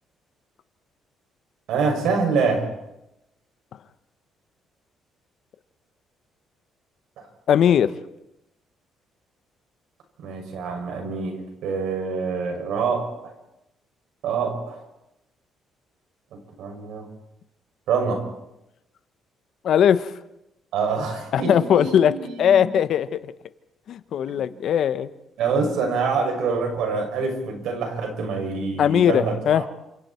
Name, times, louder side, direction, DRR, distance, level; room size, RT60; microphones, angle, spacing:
voice 1, 1.7-2.7 10.2-13.1 14.2-14.8 16.6-17.0 17.9-18.2 20.7-22.7 24.3-24.4 25.4-29.6, right 5 dB, 80° right, 2 dB, 6.9 m, -25 dB
voice 2, 7.5-7.9 19.6-20.1 21.3-22.1 22.4-23.1 23.9-25.1 28.8-29.6, left 9 dB, 60° left, 13 dB, 1.2 m, -19 dB
28.5 x 27.5 x 4.6 m, 0.87 s
cardioid pair, 115°, 0 cm